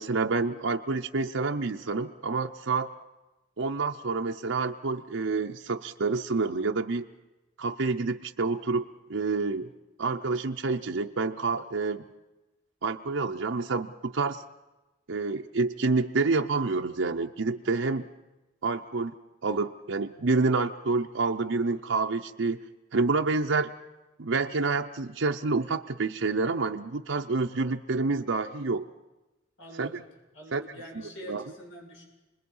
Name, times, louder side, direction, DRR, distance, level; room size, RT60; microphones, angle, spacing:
voice 1, 0.0-2.9 3.6-7.0 7.6-9.7 10.0-12.1 12.8-14.4 15.1-18.0 18.6-19.1 19.4-22.6 22.9-23.7 24.2-28.9 29.8-29.9 30.5-30.7 31.3-31.4, right 3 dB, 70° right, 3 dB, 0.7 m, -28 dB
voice 2, 29.6-30.0 30.3-32.1, equal, 85° left, 0 dB, 7.8 m, -45 dB
29.0 x 21.0 x 5.5 m, 1.1 s
head